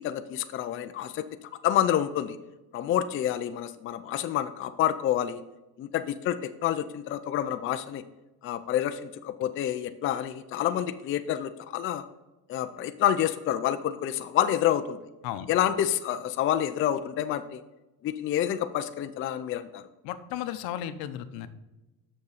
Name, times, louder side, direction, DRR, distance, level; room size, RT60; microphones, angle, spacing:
voice 1, 0.0-2.4 2.7-5.4 5.8-8.0 8.4-12.0 12.5-15.0 15.5-17.6 18.0-19.8, left 11 dB, 35° left, 9 dB, 0.4 m, -28 dB
voice 2, 20.0-21.5, left 11 dB, 70° left, 11 dB, 0.8 m, -34 dB
7.1 x 6.4 x 4.9 m, 1.0 s
supercardioid pair, 115°, 38 cm